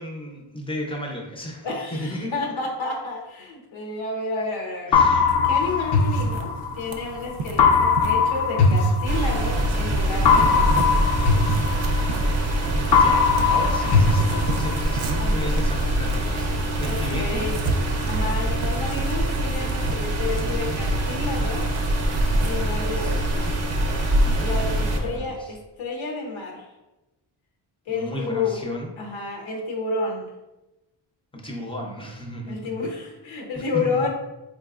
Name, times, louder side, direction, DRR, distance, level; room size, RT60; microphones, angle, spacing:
voice 1, 0.0-2.3 4.9-5.4 10.3-11.0 12.9-16.5 16.8-17.5 20.4-20.8 21.1-21.5 22.1-22.7 22.9-23.1 24.2-24.5 24.9-25.5 27.9-28.9 31.3-32.8 33.5-34.1, equal, 10° left, 0 dB, 0.5 m, -34 dB
voice 2, 1.6-5.0 5.4-10.9 15.2-15.7 16.9-17.6 18.1-21.6 22.4-23.3 24.4-26.7 27.9-28.6 29.0-30.3 32.5-34.1, left 3 dB, 90° left, 0 dB, 0.9 m, -30 dB
sound 1, 4.9-7.0 7.6-9.7 10.3-12.5 12.9-15.0, left 5 dB, 60° left, 0.5 m, -20 dB
sound 2, 5.3-25.2, right 3 dB, 80° right, 0.5 m, -35 dB
sound 3, 9.0-25.0, right 1 dB, 35° right, 0.5 m, -24 dB
4.1 x 3.0 x 2.4 m, 1.0 s
wide cardioid pair, 155°, 45 cm